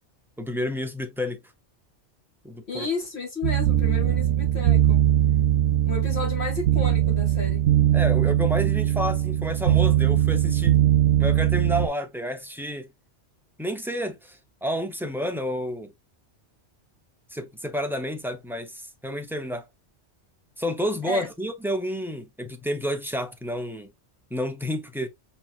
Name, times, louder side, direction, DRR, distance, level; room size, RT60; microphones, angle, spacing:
voice 1, 0.4-1.4 2.4-2.9 7.9-10.8 11.2-12.9 13.6-15.9 17.3-19.6 20.6-23.9 24.3-25.1, equal, 5° right, 0.4 m, -30 dB
voice 2, 2.7-5.0 5.8-7.7 21.0-21.3, left 3 dB, 60° left, 2.2 m, -32 dB
sound 1, 3.4-11.9, right 12 dB, 80° right, 0.9 m, -21 dB
5.5 x 3.1 x 2.4 m
omnidirectional pair, 1.2 m